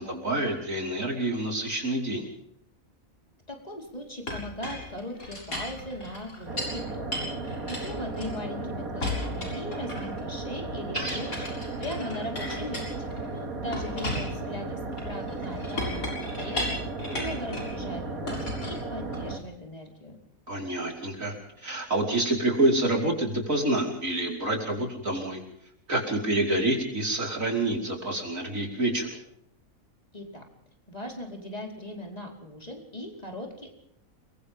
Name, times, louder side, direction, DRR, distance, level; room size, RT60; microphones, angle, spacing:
voice 1, 0.0-2.3 10.9-11.2 20.5-25.4 25.9-29.2, right 1 dB, 70° right, 0 dB, 5.6 m, -27 dB
voice 2, 3.5-7.1 7.4-11.3 11.8-16.6 17.1-20.2 30.1-30.5 30.9-33.8, left 1 dB, 25° left, 1 dB, 4.9 m, -39 dB
Chink clink, 4.3-6.8 7.1-8.6 9.0-10.2 11.0-13.3 13.7-17.8 18.3-19.4, left 1 dB, 80° left, 7.3 m, -35 dB
sound 1, 6.5-19.4, right 3 dB, 85° right, 3.0 m, -35 dB
29.5 x 23.5 x 3.8 m, 0.72 s
omnidirectional pair, 1.5 m